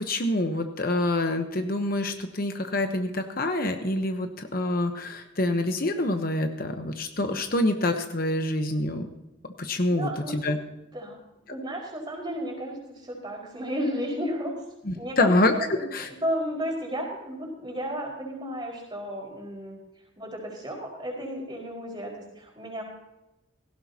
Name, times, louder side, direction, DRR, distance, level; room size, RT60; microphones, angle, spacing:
voice 1, 0.0-9.1 9.6-10.6 14.8-15.5 15.9-16.1, left 1 dB, 45° left, 6 dB, 1.0 m, -26 dB
voice 2, 9.9-10.4 10.9-11.2 11.5-14.6 14.9-19.8 20.2-22.8, equal, 20° right, -2 dB, 4.9 m, -33 dB
18.0 x 16.0 x 2.9 m, 0.96 s
head